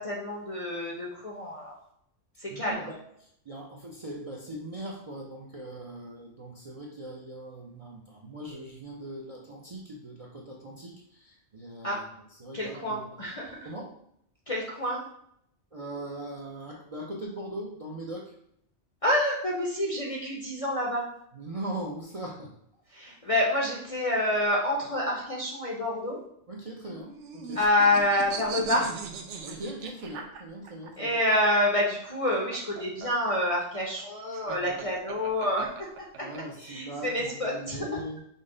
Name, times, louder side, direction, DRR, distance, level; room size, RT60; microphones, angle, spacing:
voice 1, 0.0-1.7 2.4-2.8 11.8-12.0 12.5-13.6 14.5-15.0 19.0-21.1 22.9-26.2 27.6-28.9 31.0-38.0, left 1 dB, 40° left, -2 dB, 0.5 m, -28 dB
voice 2, 2.5-13.0 13.6-13.9 15.7-18.4 21.3-22.5 26.5-27.6 27.9-28.1 29.4-31.2 36.1-38.2, right 1 dB, 45° right, -2 dB, 0.5 m, -40 dB
sound 1, 26.9-30.9 32.2-36.4, right 6 dB, 75° right, 0.9 m, -39 dB
5.5 x 2.1 x 3.7 m, 0.71 s
omnidirectional pair, 1.3 m